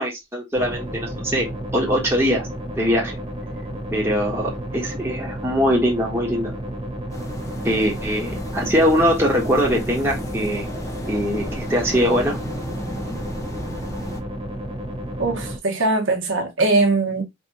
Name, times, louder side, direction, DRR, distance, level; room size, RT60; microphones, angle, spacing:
voice 1, 0.0-2.5 2.7-3.1 3.9-6.5 7.6-10.7 11.1-12.4, equal, 10° right, 1.4 m, -22 dB
sound 1, 0.5-15.6, equal, 30° right, 1.5 m, -32 dB
sound 2, 7.1-14.2, equal, 15° left, 0.8 m, -34 dB
voice 2, 15.2-17.2, right 3 dB, 75° right, 1.5 m, -21 dB
5.0 x 3.4 x 2.9 m
head